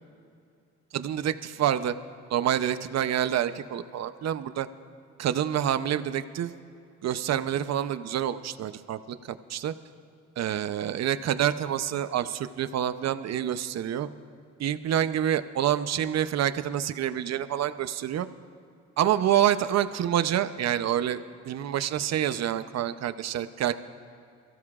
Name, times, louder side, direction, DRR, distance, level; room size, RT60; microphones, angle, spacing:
voice 1, 0.9-1.9 2.3-4.7 5.2-6.5 7.0-9.7 10.4-14.1 14.6-18.3 19.0-23.7, right 10 dB, 60° right, 12 dB, 0.7 m, -27 dB
24.0 x 15.5 x 2.4 m, 2.5 s
cardioid pair, 90°, 30 cm